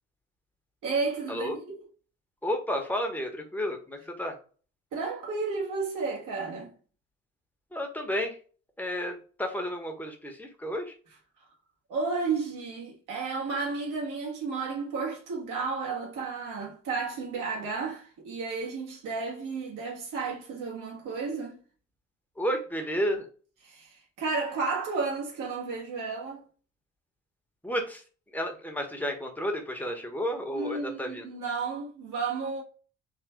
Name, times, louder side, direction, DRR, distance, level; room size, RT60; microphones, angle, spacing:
voice 1, 0.8-1.9 4.9-6.7 11.9-21.6 23.6-26.5 30.5-32.6, right 4 dB, 55° right, 1.7 m, -32 dB
voice 2, 2.4-4.3 7.7-8.4 8.8-10.9 22.4-23.3 27.6-28.0 28.3-31.3, equal, 5° left, 1.1 m, -31 dB
3.8 x 3.2 x 3.4 m
figure-of-eight pair, 50°, 38 cm